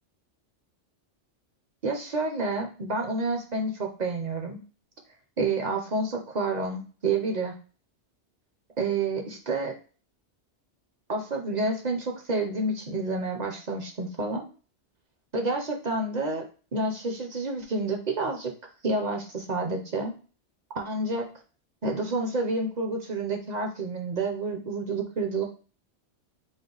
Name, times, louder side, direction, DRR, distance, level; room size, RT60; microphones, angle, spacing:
voice 1, 1.8-4.6 5.4-7.5 8.8-9.7 11.1-14.5 15.3-16.4 16.7-18.5 18.8-20.1 20.7-21.3 21.8-25.4, right 3 dB, 45° right, 2 dB, 0.7 m, -29 dB
5.2 x 2.2 x 3.8 m, 0.37 s
omnidirectional pair, 1.2 m